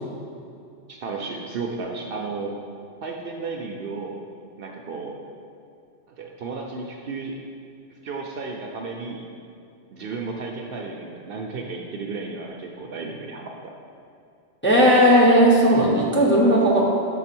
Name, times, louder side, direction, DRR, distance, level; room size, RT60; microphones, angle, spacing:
voice 1, 0.9-2.5 3.0-4.2 4.6-5.2 6.1-7.4 8.0-9.2 9.9-13.7, right 4 dB, 65° right, 1 dB, 0.7 m, -33 dB
voice 2, 14.6-16.8, equal, 10° left, -3 dB, 0.6 m, -16 dB
5.4 x 3.8 x 5.9 m, 2.5 s
omnidirectional pair, 1.2 m